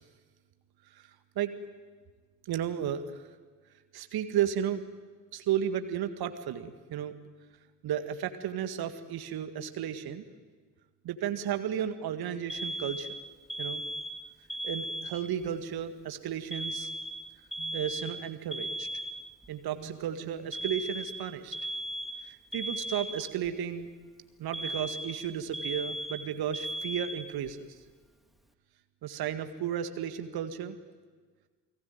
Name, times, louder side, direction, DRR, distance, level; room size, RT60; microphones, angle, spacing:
voice 1, 2.5-3.2 3.9-4.8 5.3-7.1 7.8-10.2 11.0-13.1 13.6-13.8 14.6-16.9 17.6-18.9 19.5-21.6 22.2-23.9 24.4-27.7 29.0-30.8, right 9 dB, 50° right, 9 dB, 2.0 m, -33 dB
Alarm, 12.5-15.5 16.5-19.5 20.5-23.5 24.5-27.5, right 1 dB, ahead, 2.0 m, -37 dB
29.5 x 20.0 x 9.3 m, 1.5 s
figure-of-eight pair, 45°, 48 cm